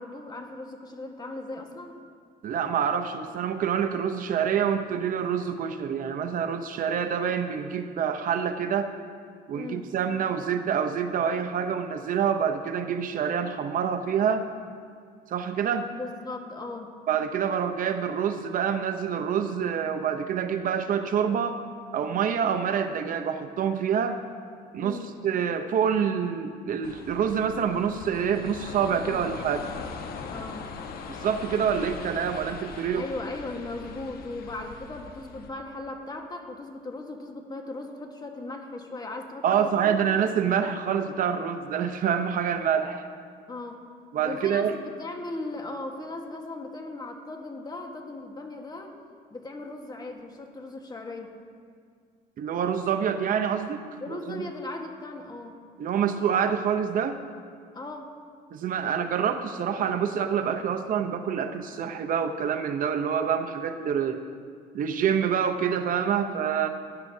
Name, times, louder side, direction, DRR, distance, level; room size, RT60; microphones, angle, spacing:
voice 1, 0.0-2.0 9.5-9.9 15.9-17.0 24.8-25.1 29.1-29.3 30.3-30.7 32.9-40.2 43.5-43.8 44.2-48.9 49.3-51.3 54.0-55.6 57.7-58.1, left 2 dB, 25° left, 3 dB, 1.4 m, -38 dB
voice 2, 2.4-8.9 9.5-14.5 15.3-15.9 17.1-21.6 21.9-24.2 24.7-25.0 25.2-29.7 31.2-33.1 39.4-43.0 44.1-44.7 52.4-54.5 55.8-57.2 58.5-64.2 64.7-66.7, right 7 dB, 55° right, 8 dB, 0.7 m, -26 dB
sound 1, 26.8-35.5, left 5 dB, 65° left, 1.1 m, -40 dB
18.5 x 10.5 x 2.7 m, 2.1 s
cardioid pair, 110°, 17 cm